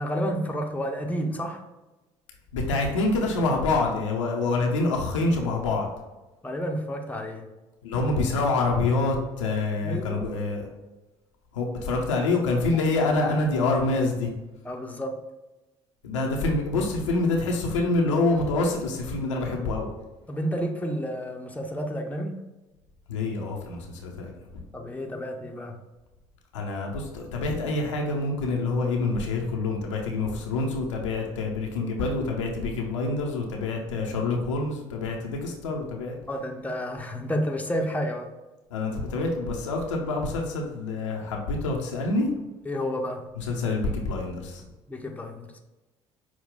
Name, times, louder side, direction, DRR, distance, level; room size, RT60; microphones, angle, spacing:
voice 1, 0.0-1.6 4.5-4.6 6.4-7.5 9.8-10.3 12.7-12.8 14.6-15.2 20.3-22.4 24.7-25.8 36.3-38.3 42.6-43.3 44.9-45.6, equal, 10° left, 2 dB, 0.8 m, -30 dB
voice 2, 2.5-5.9 7.8-10.7 11.5-14.3 16.0-19.9 23.1-24.3 26.5-36.1 38.7-42.3 43.4-44.6, left 3 dB, 90° left, 0 dB, 0.7 m, -26 dB
5.9 x 2.3 x 3.7 m, 1.1 s
hypercardioid pair, 55°, 15 cm